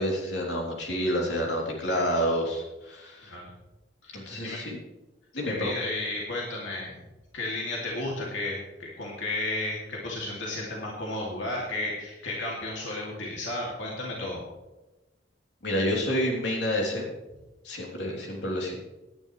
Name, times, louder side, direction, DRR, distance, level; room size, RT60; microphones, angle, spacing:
voice 1, 0.0-3.4 4.1-4.8 5.3-5.7 15.6-17.0 17.6-18.7, equal, 65° left, -1 dB, 3.3 m, -29 dB
voice 2, 4.0-4.6 5.4-6.9 7.3-14.4 18.0-18.1, left 2 dB, 85° left, -3 dB, 2.6 m, -33 dB
18.0 x 10.5 x 3.3 m, 1.0 s
head